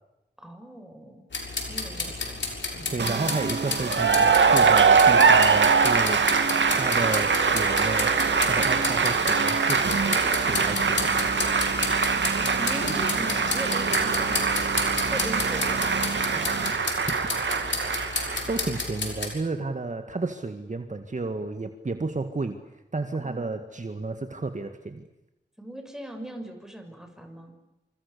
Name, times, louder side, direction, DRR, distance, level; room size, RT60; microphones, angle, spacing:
voice 1, 0.4-1.3 1.6-2.4 12.6-14.4 15.1-16.8 23.2-23.6 25.6-27.5, right 1 dB, 5° right, 4 dB, 6.7 m, -39 dB
sound 1, 1.3-19.3, left 3 dB, 75° left, 6.7 m, -32 dB
voice 2, 2.9-8.1 8.5-11.3 17.1-17.4 18.5-22.6 22.9-25.0, right 3 dB, 40° right, 7 dB, 2.1 m, -32 dB
sound 2, 3.0-16.7, right 4 dB, 70° right, 2.8 m, -32 dB
Cheering / Applause, 3.8-18.8, right 5 dB, 90° right, 2.5 m, -23 dB
28.0 x 27.0 x 7.0 m, 0.96 s
wide cardioid pair, 85°, 19 cm